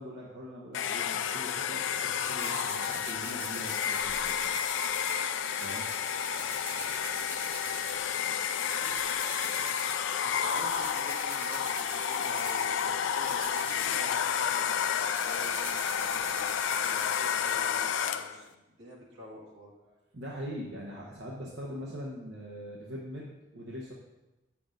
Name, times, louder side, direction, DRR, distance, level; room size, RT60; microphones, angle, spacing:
voice 1, 0.0-4.3 5.6-5.9 20.1-23.9, equal, 65° right, -3 dB, 0.8 m, -42 dB
Domestic sounds home sounds, 0.7-18.4, left 8 dB, 70° left, 0.3 m, -31 dB
sound 1, 2.2-17.6, equal, 10° right, 0.8 m, -43 dB
voice 2, 10.2-20.0, equal, 85° right, -4 dB, 1.9 m, -48 dB
8.5 x 6.9 x 2.6 m, 1.0 s
head